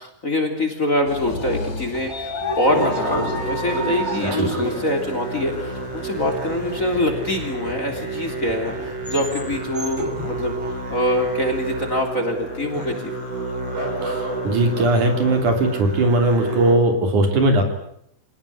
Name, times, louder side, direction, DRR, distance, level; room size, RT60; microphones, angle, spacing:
voice 1, 0.0-13.1, left 1 dB, 25° left, 6 dB, 3.5 m, -24 dB
sound 1, 1.1-7.2 7.7-7.8 8.9-9.2, equal, 80° left, 7.6 m, -31 dB
Train / Sliding door, 1.6-11.7, equal, 10° right, 3.2 m, -32 dB
Musical instrument, 2.7-16.8, right 2 dB, 45° right, 6.6 m, -30 dB
voice 2, 14.0-17.6, right 2 dB, 70° right, 5 dB, 4.7 m, -19 dB
26.5 x 19.0 x 9.9 m, 0.72 s
omnidirectional pair, 3.7 m